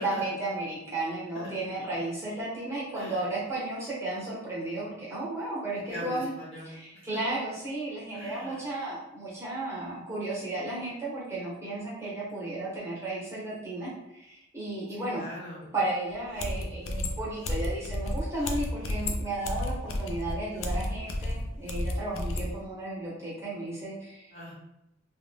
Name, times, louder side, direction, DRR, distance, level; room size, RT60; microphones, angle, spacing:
voice 1, 0.0-6.3 6.6-15.3 15.7-24.3, right 2 dB, 15° right, -8 dB, 0.8 m, -34 dB
voice 2, 2.9-3.3 5.9-7.1 8.1-8.6 14.9-15.7 24.3-24.5, equal, 30° left, -7 dB, 0.9 m, -41 dB
sound 1, 16.1-16.2 16.4-22.5, left 1 dB, 70° left, 0.4 m, -32 dB
2.4 x 2.1 x 3.4 m, 0.87 s
head